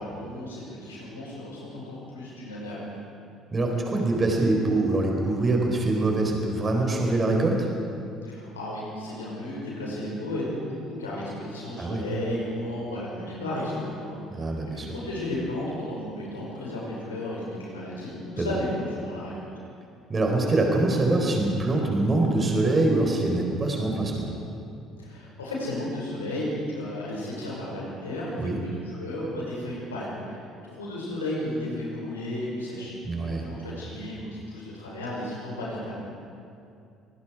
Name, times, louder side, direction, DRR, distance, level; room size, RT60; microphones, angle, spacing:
voice 1, 0.0-2.8 8.2-19.3 25.0-32.9 33.2-35.9, left 1 dB, 80° left, -5 dB, 5.8 m, -34 dB
voice 2, 3.5-7.7 11.8-12.0 14.3-14.9 18.4-18.5 20.1-24.3 28.4-28.6 33.0-33.4, right 2 dB, 30° right, 1 dB, 4.4 m, -24 dB
27.0 x 19.5 x 4.9 m, 2.5 s
figure-of-eight pair, 55°, 0 cm